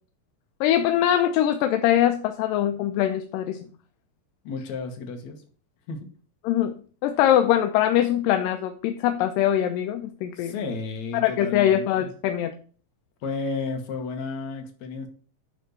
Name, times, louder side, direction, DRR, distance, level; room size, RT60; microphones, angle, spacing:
voice 1, 0.6-3.6 6.4-6.7 7.0-10.5 11.1-12.5, left 11 dB, 80° left, 6 dB, 2.2 m, -22 dB
voice 2, 4.4-5.4 5.9-6.0 10.4-12.1 13.2-15.1, left 4 dB, 60° left, 4 dB, 2.3 m, -32 dB
9.4 x 3.4 x 6.4 m, 0.42 s
omnidirectional pair, 4.0 m